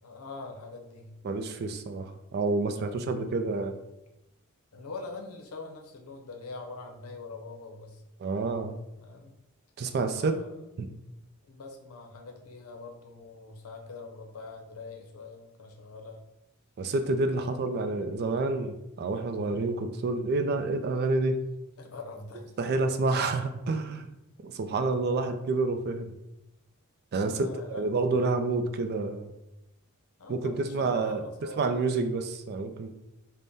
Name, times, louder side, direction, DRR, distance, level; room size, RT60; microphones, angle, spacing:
voice 1, 0.0-1.2 2.6-3.3 4.7-8.0 9.0-9.4 10.1-10.6 11.4-16.2 17.3-17.6 21.8-22.7 27.3-28.4 30.2-31.9, left 3 dB, 85° left, 3 dB, 0.6 m, -44 dB
voice 2, 1.2-3.8 8.2-8.8 9.8-10.4 16.8-21.4 22.6-24.1 24.4-26.1 27.1-29.3 30.3-31.2 31.6-32.9, right 3 dB, 50° right, 8 dB, 0.3 m, -28 dB
3.5 x 2.1 x 4.0 m, 0.91 s
head